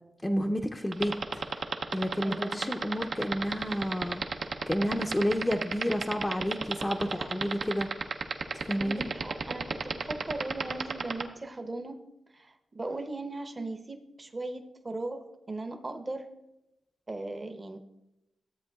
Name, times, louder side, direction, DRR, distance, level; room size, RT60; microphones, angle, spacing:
voice 1, 0.2-1.4 1.9-4.2 4.7-7.9 8.5-9.1, equal, 15° left, 2 dB, 0.5 m, -30 dB
sound 1, 0.9-11.2, right 5 dB, 75° right, 0.7 m, -30 dB
voice 2, 2.2-2.8 8.8-12.0 12.3-16.3 17.1-17.8, right 2 dB, 35° right, 7 dB, 0.8 m, -38 dB
13.0 x 7.8 x 2.3 m, 0.90 s
cardioid pair, 65°, 0 cm